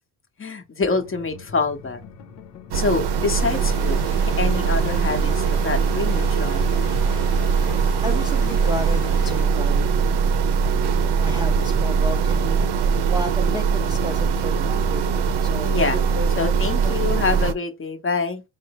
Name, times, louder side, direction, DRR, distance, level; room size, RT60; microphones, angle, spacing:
voice 1, 0.4-2.0 2.7-6.7 15.6-16.0 16.3-18.4, left 4 dB, 30° left, 1.0 m, -26 dB
sound 1, 0.9-15.6, left 4 dB, 75° left, 0.8 m, -43 dB
sound 2, 2.7-17.5, right 5 dB, 70° right, 0.7 m, -21 dB
sound 3, 3.4-9.4, left 6 dB, 60° left, 1.1 m, -42 dB
voice 2, 8.0-10.1 11.2-12.7 13.1-16.5, right 1 dB, 10° right, 0.4 m, -32 dB
4.2 x 2.0 x 4.2 m
supercardioid pair, 80°, 42 cm